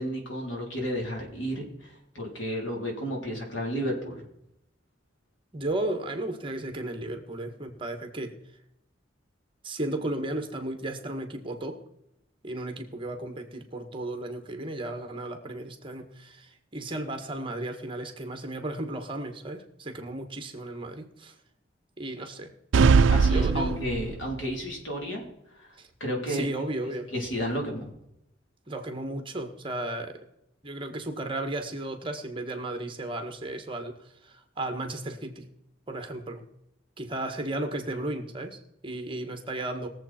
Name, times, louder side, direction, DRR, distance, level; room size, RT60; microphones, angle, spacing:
voice 1, 0.0-4.3 23.1-25.3 25.5-26.4 27.1-27.9, equal, 80° left, 0 dB, 3.7 m, -32 dB
voice 2, 5.5-8.3 9.6-11.8 12.4-21.3 22.0-22.5 23.3-23.8 25.8-25.9 26.3-27.1 28.7-30.2 30.6-35.5 35.9-36.4 37.0-39.9, right 1 dB, 25° right, 6 dB, 1.5 m, -34 dB
sound 1, 22.7-24.4, right 5 dB, 85° right, 0.4 m, -21 dB
20.5 x 7.6 x 4.4 m, 0.80 s
head